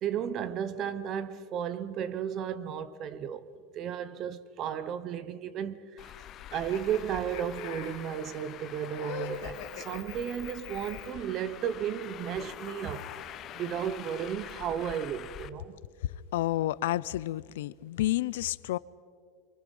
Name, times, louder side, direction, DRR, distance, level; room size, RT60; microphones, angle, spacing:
voice 1, 0.0-3.5 3.7-6.1 6.5-13.1 13.5-15.7, right 9 dB, 30° right, 0.8 m, -34 dB
Traffic noise roadway noise, 6.0-15.5, left 12 dB, 30° left, 0.5 m, -45 dB
sound 1, 6.5-11.2 12.4-14.1, left 6 dB, 55° left, 3.3 m, -44 dB
voice 2, 16.3-18.8, left 15 dB, 90° left, 0.5 m, -30 dB
27.0 x 24.0 x 5.4 m
supercardioid pair, 175°, 0 cm